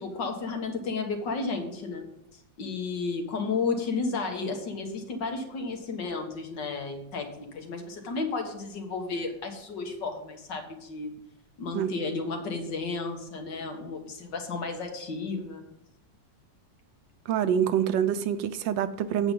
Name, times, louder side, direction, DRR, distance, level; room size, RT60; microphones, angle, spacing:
voice 1, 0.0-2.1 2.6-11.1 11.6-15.6, left 4 dB, 75° left, 4 dB, 2.1 m, -33 dB
voice 2, 17.3-19.3, right 9 dB, 90° right, 11 dB, 1.4 m, -26 dB
8.7 x 7.3 x 5.4 m, 0.78 s
omnidirectional pair, 1.9 m